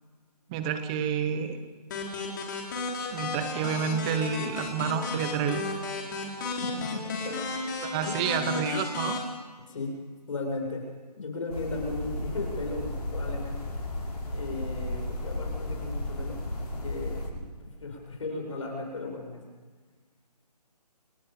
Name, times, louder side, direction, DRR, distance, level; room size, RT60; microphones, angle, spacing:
voice 1, 0.5-1.6 3.1-5.6 7.8-9.2, right 7 dB, 10° right, 10 dB, 0.8 m, -29 dB
sound 1, 1.9-9.2, left 3 dB, 30° left, 4.1 m, -34 dB
voice 2, 6.4-7.4 8.0-8.2 9.7-10.0 10.3-10.8 11.2-13.6 14.3-19.4, left 3 dB, 50° left, 1 dB, 6.9 m, -36 dB
sound 2, 11.5-17.3, left 1 dB, 65° left, 7.3 m, -34 dB
29.0 x 17.5 x 5.3 m, 1.4 s
figure-of-eight pair, 165°, 21 cm